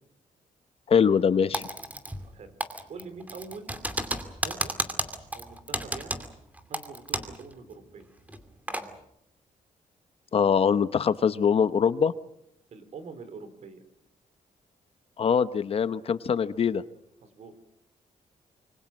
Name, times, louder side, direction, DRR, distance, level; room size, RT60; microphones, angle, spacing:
voice 1, 0.9-1.6 10.3-12.1 15.2-16.8, left 7 dB, 45° left, 14 dB, 0.9 m, -23 dB
Typing, 1.5-2.3 2.6-7.4 7.7-7.8 8.3-8.9, right 1 dB, 10° right, 2.5 m, -32 dB
voice 2, 2.9-3.7 4.4-4.7 5.3-6.2 6.7-8.1 12.7-13.8 17.2-17.5, right 4 dB, 55° right, 11 dB, 4.1 m, -44 dB
26.0 x 25.0 x 6.2 m, 0.80 s
cardioid pair, 145°, 14 cm